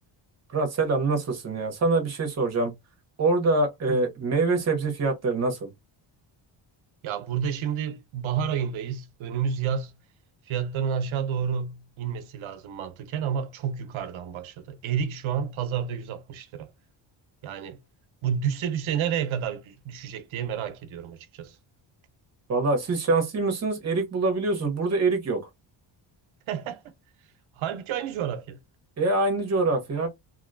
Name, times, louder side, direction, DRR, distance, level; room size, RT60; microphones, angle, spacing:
voice 1, 0.5-2.7 3.2-5.7 22.5-25.5 29.0-30.1, right 3 dB, 35° right, 1.0 m, -25 dB
voice 2, 7.0-9.9 10.5-16.7 17.4-17.8 18.2-21.6 26.5-26.8 27.6-28.6, right 8 dB, 90° right, 0.8 m, -30 dB
2.9 x 2.8 x 2.6 m
cardioid pair, 175°, 47 cm